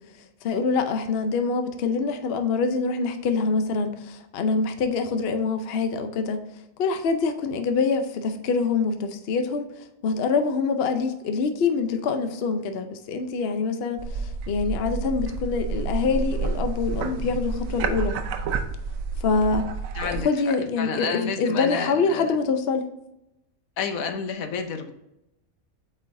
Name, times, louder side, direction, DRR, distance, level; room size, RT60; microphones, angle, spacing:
voice 1, 0.4-6.4 6.8-18.1 19.2-19.7 20.0-22.8, left 4 dB, 55° left, 7 dB, 0.8 m, -25 dB
sound 1, 14.0-20.2, right 4 dB, 80° right, 1.1 m, -29 dB
voice 2, 19.9-20.3 20.8-22.4 23.8-24.9, left 6 dB, 90° left, 7 dB, 1.2 m, -30 dB
8.5 x 4.3 x 2.6 m, 0.87 s
omnidirectional pair, 1.4 m